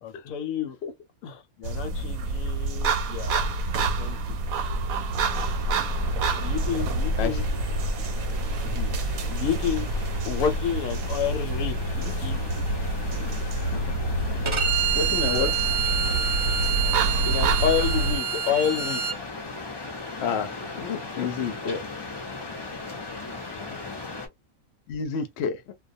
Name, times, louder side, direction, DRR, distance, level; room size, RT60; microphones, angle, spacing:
voice 1, 0.0-0.8 1.2-3.5 3.8-4.4 6.4-7.5 8.6-9.9 10.2-11.9 12.2-12.6 17.3-19.0 23.5-24.1, left 8 dB, 85° left, 1.0 m, -30 dB
sound 1, 1.6-18.2, right 2 dB, 90° right, 1.0 m, -27 dB
sound 2, 5.1-24.3, left 3 dB, 40° left, 0.3 m, -38 dB
Bowed string instrument, 14.5-19.2, right 8 dB, 55° right, 0.3 m, -27 dB
voice 2, 14.8-15.6 20.2-21.9 24.9-25.7, left 6 dB, 60° left, 0.7 m, -31 dB
2.3 x 2.2 x 2.6 m
omnidirectional pair, 1.4 m